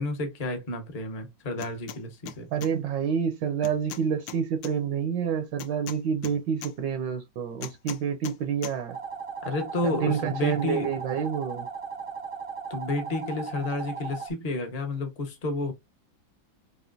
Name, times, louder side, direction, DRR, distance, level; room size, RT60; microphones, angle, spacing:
voice 1, 0.0-2.5 9.4-10.9 12.7-15.7, left 2 dB, 40° left, 0.5 m, -31 dB
sound 1, 1.6-2.0 2.3-2.7 3.6-4.7 5.6-6.7 7.6-8.4 8.6-8.8, left 10 dB, 75° left, 1.2 m, -39 dB
voice 2, 2.5-9.0 9.8-11.7, right 7 dB, 75° right, 1.2 m, -28 dB
sound 2, 8.9-14.3, right 6 dB, 50° right, 0.7 m, -37 dB
4.9 x 2.8 x 2.6 m
omnidirectional pair, 2.2 m